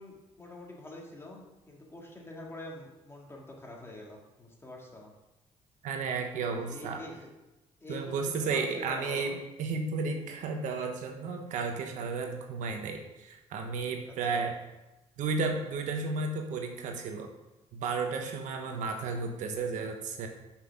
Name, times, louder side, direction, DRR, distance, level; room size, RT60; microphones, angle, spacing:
voice 1, 0.0-5.1 6.5-7.3 7.8-9.4 14.0-14.4, left 1 dB, 20° left, -2 dB, 2.2 m, -46 dB
voice 2, 5.8-7.0 7.9-14.6 15.2-17.3 17.7-20.3, right 4 dB, 80° right, 4 dB, 1.1 m, -33 dB
6.2 x 5.8 x 5.9 m, 1.0 s
cardioid pair, 80°, 13 cm